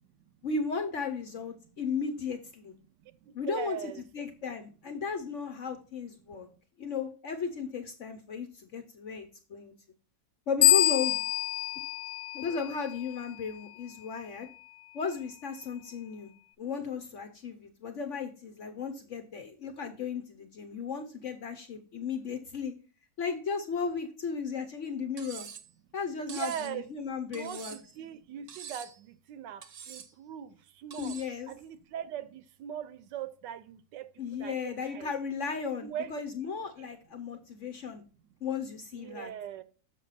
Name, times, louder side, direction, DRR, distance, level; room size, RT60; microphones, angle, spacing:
voice 1, 0.4-2.7 3.3-6.5 6.8-9.7 10.5-11.2 12.3-14.5 14.9-16.3 16.6-22.7 23.2-25.5 25.9-27.8 31.0-31.5 34.2-38.0 38.4-39.3, left 5 dB, 60° left, 0.8 m, -35 dB
voice 2, 3.0-4.0 26.3-26.9 27.3-31.2 31.5-35.1 35.8-36.1 36.8-36.9 38.9-39.6, right 9 dB, 80° right, 1.2 m, -40 dB
sound 1, 10.6-13.1, left 12 dB, 75° left, 1.1 m, -26 dB
Cutlery silverware, 25.2-25.7 26.3-26.7 27.3-27.9 28.5-29.0 29.6-30.1 30.9-31.3, right 7 dB, 55° right, 0.9 m, -45 dB
6.7 x 5.8 x 4.0 m
omnidirectional pair, 1.9 m